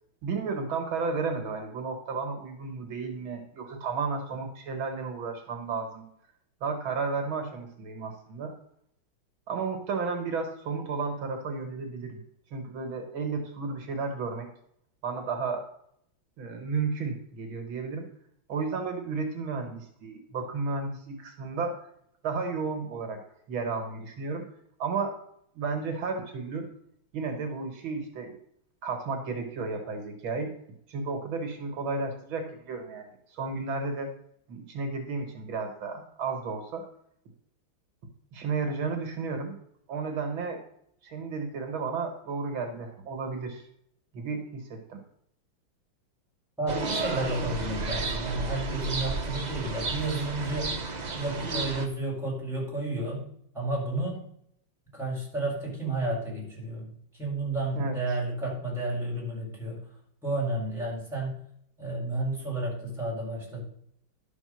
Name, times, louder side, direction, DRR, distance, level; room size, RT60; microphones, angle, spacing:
voice 1, 0.2-6.1 6.6-8.5 9.5-12.2 12.5-14.5 15.0-15.7 16.4-18.1 18.5-21.8 22.2-24.5 24.8-25.2 25.5-26.7 27.1-28.4 28.8-30.5 30.9-34.1 34.5-36.9 38.3-39.6 39.9-40.6 41.0-43.7 44.1-45.0 57.7-58.0, right 4 dB, 75° right, 5 dB, 2.2 m, -33 dB
voice 2, 46.6-50.8 51.1-53.3 53.5-54.2 54.9-56.9 57.2-59.8 60.2-61.4 61.8-63.6, right 2 dB, ahead, -3 dB, 4.3 m, -31 dB
sound 1, 46.7-51.9, right 3 dB, 40° right, 0.6 m, -32 dB
11.5 x 5.1 x 6.3 m, 0.70 s
omnidirectional pair, 2.2 m